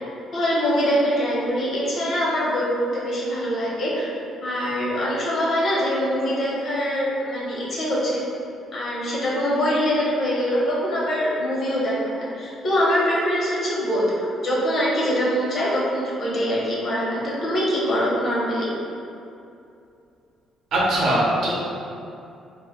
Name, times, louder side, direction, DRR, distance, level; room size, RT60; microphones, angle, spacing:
voice 1, 0.3-4.1 4.4-8.2 8.7-18.7, equal, 55° left, -6 dB, 0.8 m, -23 dB
voice 2, 20.7-21.5, right 1 dB, 70° right, -6 dB, 0.7 m, -20 dB
2.1 x 2.1 x 3.4 m, 2.6 s
cardioid pair, 95°, 0 cm